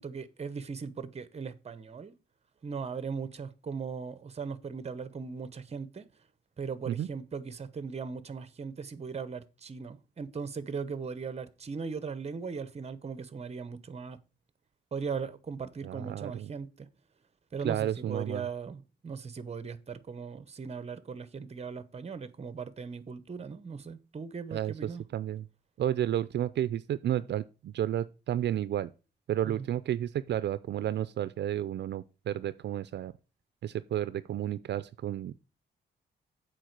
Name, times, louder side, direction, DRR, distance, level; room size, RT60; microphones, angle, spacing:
voice 1, 0.0-2.1 2.6-6.1 6.6-14.2 14.9-16.9 17.5-25.0 29.5-29.7, right 5 dB, 35° right, 0.9 m, -38 dB
voice 2, 15.8-16.5 17.6-18.5 24.5-25.5 25.8-28.9 29.3-33.1 33.6-35.3, right 11 dB, 70° right, 0.4 m, -32 dB
7.6 x 4.7 x 6.6 m
cardioid pair, 110°, 18 cm